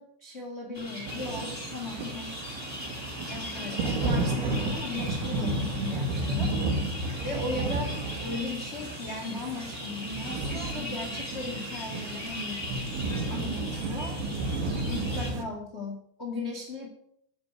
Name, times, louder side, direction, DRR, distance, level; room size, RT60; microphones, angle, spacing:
voice 1, 0.0-2.4 3.3-6.5 7.2-7.9 8.2-12.8 13.3-16.9, left 2 dB, 70° left, 1 dB, 0.6 m, -37 dB
sound 1, 0.7-15.3, left 1 dB, 10° left, 5.9 m, -39 dB
sound 2, 1.1-15.4, right 2 dB, 75° right, 3.4 m, -32 dB
10.5 x 9.5 x 9.0 m, 0.71 s
omnidirectional pair, 5.5 m